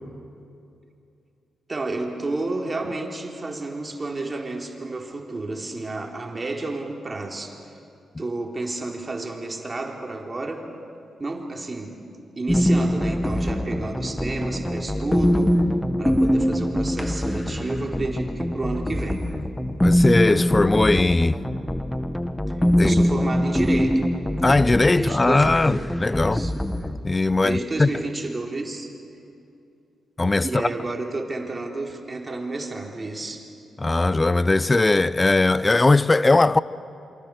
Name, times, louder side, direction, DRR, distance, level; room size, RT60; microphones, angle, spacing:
voice 1, 1.7-7.8 8.2-10.7 11.2-12.0 12.4-15.6 16.0-19.3 22.8-24.1 24.9-25.8 26.1-26.5 27.4-28.9 30.4-33.5, right 2 dB, 35° right, 4.2 m, -30 dB
sound 1, 12.5-27.0, equal, 10° left, 1.7 m, -23 dB
voice 2, 19.8-21.4 22.8-23.1 24.4-26.5 27.0-27.9 30.2-30.7 33.8-36.6, left 2 dB, 30° left, 0.8 m, -19 dB
28.0 x 25.0 x 6.6 m
supercardioid pair, 45°, 0 cm